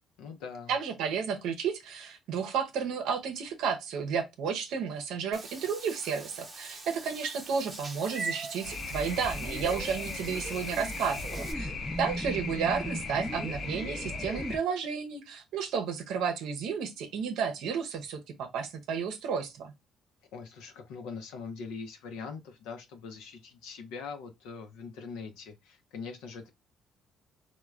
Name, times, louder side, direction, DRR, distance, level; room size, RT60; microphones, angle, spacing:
voice 1, 0.2-0.7 20.3-26.5, left 5 dB, 85° left, 0.5 m, -42 dB
voice 2, 0.7-11.7 12.0-19.7, right 6 dB, 80° right, 0.6 m, -32 dB
Meow / Water / Bathtub (filling or washing), 5.3-11.5, right 3 dB, 30° right, 0.8 m, -43 dB
sound 1, 8.6-14.6, left 3 dB, 55° left, 0.8 m, -38 dB
sound 2, 9.2-14.6, equal, 10° left, 0.5 m, -39 dB
3.1 x 2.1 x 2.3 m
cardioid pair, 85°, 0 cm